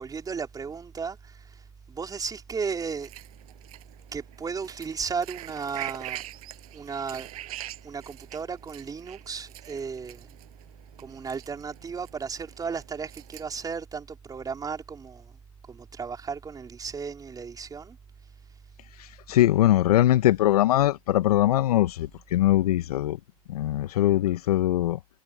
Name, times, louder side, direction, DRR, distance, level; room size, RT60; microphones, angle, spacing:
voice 1, 0.0-3.1 4.1-6.2 6.7-7.3 7.8-10.3 11.0-15.3 15.7-18.0, right 5 dB, 20° right, 4.4 m, -35 dB
sound 1, 3.0-13.7, right 15 dB, 65° right, 6.4 m, -44 dB
voice 2, 19.0-23.2 23.5-25.0, left 13 dB, 70° left, 1.2 m, -22 dB
hypercardioid pair, 100°, 20 cm